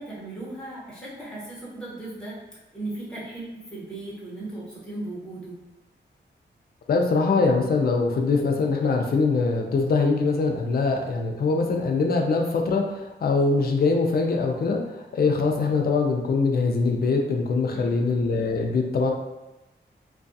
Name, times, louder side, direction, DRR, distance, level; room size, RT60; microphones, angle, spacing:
voice 1, 0.0-2.4 2.7-5.6 17.7-18.1, right 2 dB, 5° left, -8 dB, 0.9 m, -37 dB
voice 2, 6.9-19.1, left 4 dB, 50° left, 2 dB, 0.4 m, -23 dB
2.3 x 2.3 x 2.6 m, 1.0 s
wide cardioid pair, 100°, 19 cm